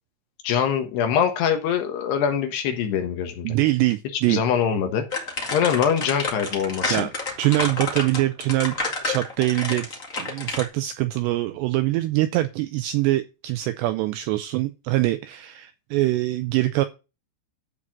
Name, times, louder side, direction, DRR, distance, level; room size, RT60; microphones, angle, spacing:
voice 1, 0.4-3.6 4.3-5.0 5.5-7.1, left 8 dB, 70° left, 6 dB, 3.1 m, -23 dB
voice 2, 3.4-4.4 6.9-7.1 7.4-8.8 9.0-16.9, right 17 dB, 85° right, 10 dB, 2.5 m, -23 dB
sound 1, 5.1-10.6, left 3 dB, 85° left, 0.7 m, -29 dB
12.0 x 4.1 x 7.5 m, 0.29 s
omnidirectional pair, 5.5 m